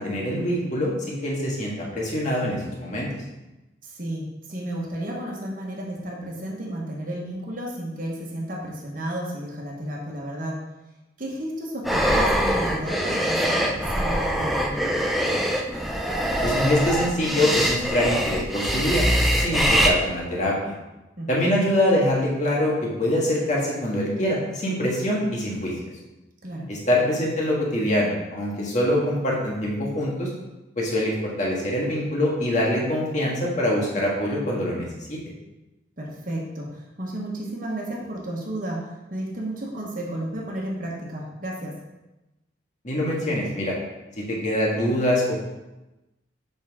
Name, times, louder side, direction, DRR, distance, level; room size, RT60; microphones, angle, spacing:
voice 1, 0.0-3.1 16.4-19.0 19.4-20.7 21.3-25.7 26.7-30.3 30.8-35.2 42.8-43.8 44.2-45.4, left 1 dB, 40° left, -3 dB, 1.8 m, -24 dB
voice 2, 3.8-10.6 11.2-15.0 21.2-21.4 26.4-26.7 36.0-41.8, right 1 dB, 45° right, -2 dB, 1.3 m, -32 dB
sound 1, 11.8-19.9, equal, ahead, 0.5 m, -23 dB
7.3 x 5.5 x 3.7 m, 1.0 s
head